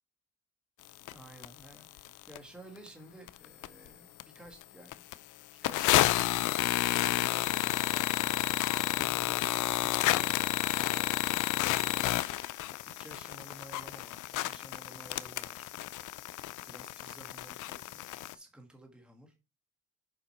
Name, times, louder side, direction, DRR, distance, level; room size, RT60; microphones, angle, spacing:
voice 1, 1.0-5.0 5.6-6.4 7.0-7.5 8.2-11.2 11.7-12.2 13.0-15.7 16.7-19.3, right 1 dB, 5° right, 3 dB, 1.7 m, -53 dB
sound 1, 1.1-1.2 1.4-1.5 2.0-2.4 2.9-3.0 3.3-3.9 4.2-4.3 4.6-4.7 4.9-5.1 5.6-18.3, left 15 dB, 80° left, 0.6 m, -31 dB
7.5 x 5.0 x 4.3 m, 0.29 s
cardioid pair, 90°, 30 cm